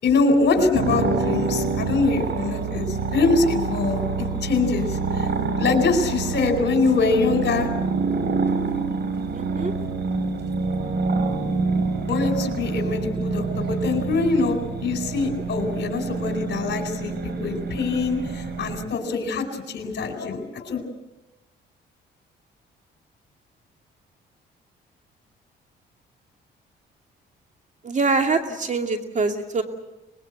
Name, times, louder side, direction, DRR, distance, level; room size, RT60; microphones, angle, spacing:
voice 1, 0.0-5.3 5.5-7.7 12.1-20.8, left 3 dB, 60° left, 5 dB, 4.6 m, -24 dB
sound 1, 0.7-18.9, right 4 dB, 60° right, 3.6 m, -27 dB
voice 2, 9.3-9.7 27.8-29.6, right 3 dB, 40° right, 5 dB, 2.4 m, -24 dB
24.0 x 21.5 x 8.1 m, 1.0 s
cardioid pair, 90°, 20 cm